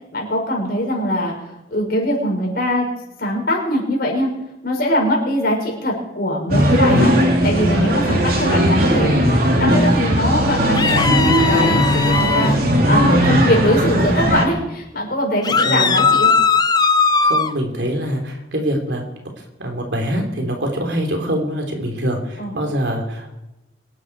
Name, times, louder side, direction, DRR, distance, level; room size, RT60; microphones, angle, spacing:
voice 1, 0.1-1.3 1.7-2.9 3.2-4.3 4.6-16.3 22.4-22.5, left 1 dB, 55° left, -1 dB, 5.8 m, -22 dB
sound 1, 6.5-14.4, equal, 55° right, 3.2 m, -17 dB
sound 2, 10.7-12.5 15.4-17.5, left 5 dB, 25° left, 0.6 m, -18 dB
voice 2, 15.5-16.1 17.2-19.0 19.4-23.3, equal, 70° right, 2 dB, 3.4 m, -24 dB
24.5 x 10.5 x 4.8 m, 0.95 s
head